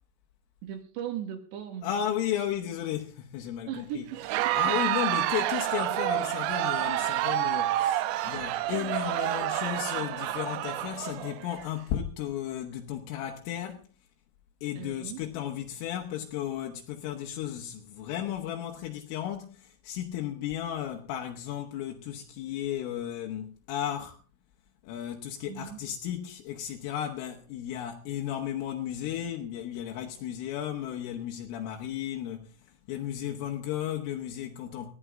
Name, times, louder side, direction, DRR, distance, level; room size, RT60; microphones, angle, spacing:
voice 1, 0.6-1.9 3.7-4.8 14.8-15.2 25.5-25.8, right 10 dB, 65° right, 3.6 m, -38 dB
voice 2, 1.8-4.1 4.5-13.9 14.6-24.2 24.8-34.9, left 11 dB, 80° left, 3.7 m, -34 dB
Crowd, 4.1-11.6, right 14 dB, 80° right, 2.7 m, -29 dB
19.5 x 14.5 x 3.7 m
omnidirectional pair, 5.9 m